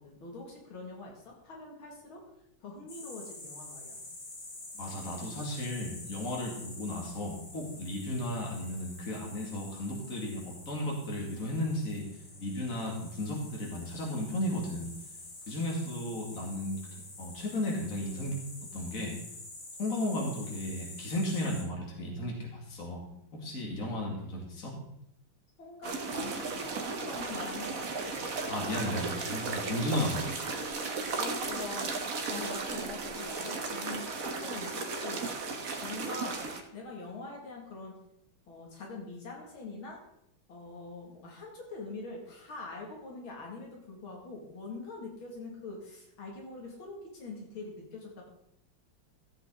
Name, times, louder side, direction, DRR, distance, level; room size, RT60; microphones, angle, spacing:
voice 1, 0.0-2.2 2.6-4.0 25.6-28.3 31.2-36.4 36.7-37.9 38.5-40.0 40.5-48.2, left 3 dB, 80° left, -1 dB, 3.0 m, -44 dB
sound 1, 2.9-21.6, left 2 dB, 55° left, 2.8 m, -47 dB
voice 2, 4.7-12.1 12.4-14.9 15.5-16.8 17.2-18.4 18.7-19.1 19.8-23.0 23.3-24.7 28.5-30.3, left 1 dB, 40° left, -1 dB, 2.7 m, -34 dB
sound 2, 25.8-36.6, right 4 dB, 50° right, 1.3 m, -35 dB
14.5 x 7.9 x 3.9 m, 0.78 s
omnidirectional pair, 2.2 m